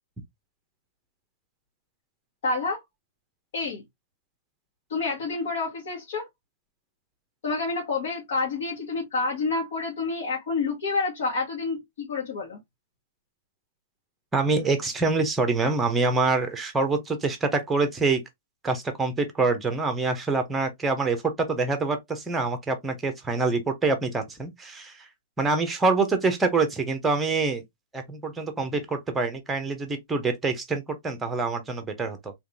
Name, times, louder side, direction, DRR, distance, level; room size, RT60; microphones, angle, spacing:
voice 1, 2.4-2.8 3.5-3.8 4.9-6.3 7.4-12.6, left 3 dB, 65° left, 1.7 m, -28 dB
voice 2, 14.3-18.2 18.6-25.1 25.4-27.6 27.9-32.3, right 3 dB, 10° right, 0.9 m, -25 dB
3.5 x 3.1 x 2.7 m
hypercardioid pair, 135°, 0 cm